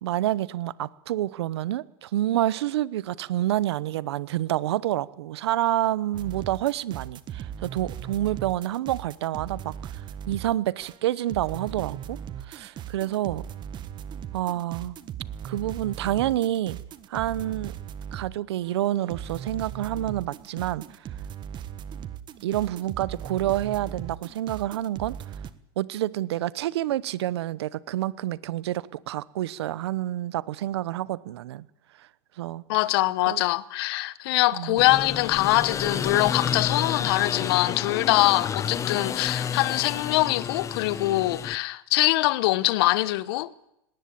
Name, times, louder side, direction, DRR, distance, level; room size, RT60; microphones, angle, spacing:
voice 1, 0.0-12.2 12.4-13.4 14.3-14.9 15.4-16.8 17.1-17.7 18.1-21.0 22.4-25.2 25.8-31.6 32.0-32.1 32.4-32.6 33.3-33.4 34.5-34.8, right 13 dB, 85° right, 0.9 m, -28 dB
sound 1, 6.1-18.4 18.6-25.5, right 9 dB, 35° right, 1.5 m, -38 dB
voice 2, 32.7-43.5, left 18 dB, 65° left, 1.1 m, -23 dB
sound 2, 34.8-41.6, left 7 dB, 20° left, 0.9 m, -30 dB
20.0 x 18.0 x 8.7 m
supercardioid pair, 125°, 13 cm